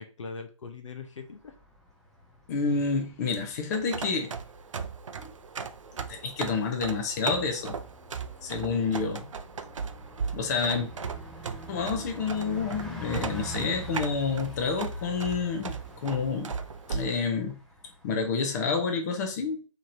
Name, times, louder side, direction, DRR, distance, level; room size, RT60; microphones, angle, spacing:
voice 1, 0.0-1.6 8.6-9.3, left 5 dB, 65° left, 6 dB, 0.6 m, -42 dB
Bus, 1.3-18.4, left 1 dB, ahead, 0.5 m, -45 dB
voice 2, 2.5-4.3 5.2-5.3 6.1-7.7 8.4-9.2 10.3-10.9 11.7-16.5 16.9-17.5 18.0-19.6, left 5 dB, 30° left, 3 dB, 0.7 m, -29 dB
sound 1, 3.7-17.1, right 6 dB, 70° right, 0.4 m, -38 dB
3.7 x 3.1 x 2.7 m, 0.35 s
figure-of-eight pair, 135°, 17 cm